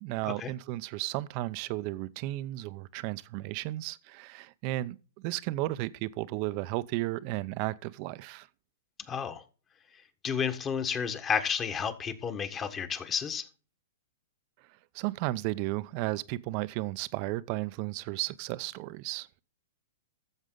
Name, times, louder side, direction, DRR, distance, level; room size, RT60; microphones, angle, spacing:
voice 1, 0.0-8.5 14.9-19.3, right 18 dB, 45° right, 0.6 m, -34 dB
voice 2, 9.1-9.4 10.2-13.5, left 7 dB, 25° left, 1.4 m, -31 dB
13.5 x 7.3 x 3.9 m
hypercardioid pair, 125°, 0 cm